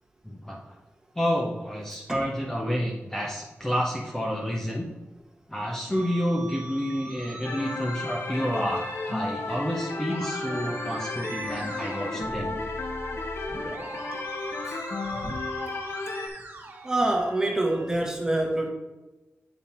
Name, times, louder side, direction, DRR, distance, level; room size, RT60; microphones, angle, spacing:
voice 1, 0.2-0.6 1.1-4.9 5.5-12.6, equal, 10° left, -2 dB, 0.8 m, -29 dB
Musical instrument, 5.9-17.9, right 2 dB, 45° right, 1.2 m, -42 dB
sound 1, 7.4-16.3, left 3 dB, 60° left, 0.8 m, -33 dB
voice 2, 16.8-18.7, right 2 dB, 15° right, 0 dB, 1.3 m, -26 dB
8.8 x 3.9 x 4.3 m, 1.1 s
wide cardioid pair, 105°, 5 cm